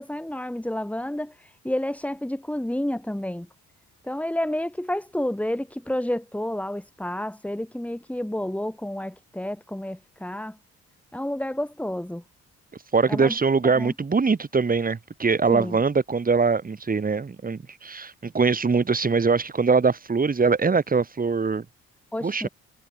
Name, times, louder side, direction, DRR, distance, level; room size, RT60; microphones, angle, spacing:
voice 1, 0.0-3.5 4.0-10.6 11.1-12.2 13.1-13.3 13.6-13.9 15.5-15.8 22.1-22.5, left 1 dB, 5° left, 6.6 m, -30 dB
voice 2, 12.9-21.6 22.2-22.5, right 4 dB, 30° right, 2.7 m, -22 dB
cardioid pair, 90°, 30 cm